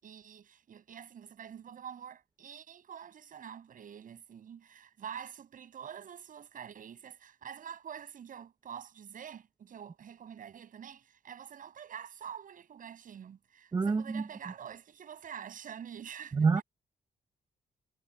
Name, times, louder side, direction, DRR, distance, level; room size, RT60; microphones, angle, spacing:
voice 1, 0.0-16.6, right 8 dB, 55° right, 7.2 m, -47 dB
voice 2, 13.7-14.2 16.3-16.6, right 4 dB, 25° right, 0.7 m, -26 dB
wide cardioid pair, 165°, 17 cm